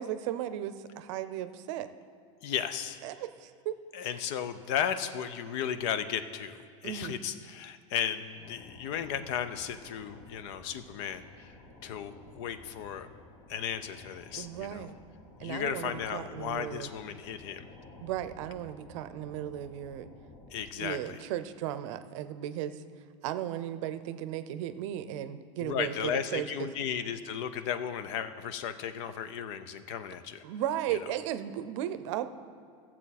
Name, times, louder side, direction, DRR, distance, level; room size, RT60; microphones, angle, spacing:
voice 1, 0.0-1.9 3.0-3.8 6.8-7.2 14.3-14.9 15.4-16.9 18.0-20.1 20.8-22.8 23.2-26.7 30.4-32.3, right 11 dB, 65° right, 12 dB, 0.6 m, -35 dB
voice 2, 2.4-3.0 3.9-11.5 11.8-13.1 13.5-14.9 15.4-17.7 20.5-21.2 25.6-30.4, left 8 dB, 60° left, 11 dB, 0.6 m, -35 dB
sound 1, 8.4-20.7, left 2 dB, 35° left, 1.2 m, -53 dB
15.0 x 7.4 x 4.2 m, 2.2 s
supercardioid pair, 150°, 17 cm